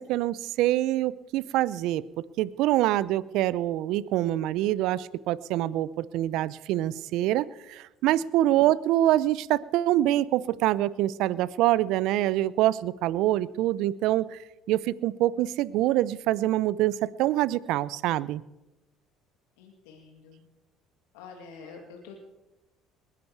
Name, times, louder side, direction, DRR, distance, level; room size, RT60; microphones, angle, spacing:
voice 1, 0.0-2.0 2.4-14.4 14.7-18.4, right 14 dB, 70° right, 20 dB, 0.5 m, -25 dB
voice 2, 19.6-20.4 21.1-22.2, left 5 dB, 85° left, 2 dB, 2.1 m, -47 dB
20.0 x 11.0 x 4.7 m, 1.0 s
supercardioid pair, 75°, 0 cm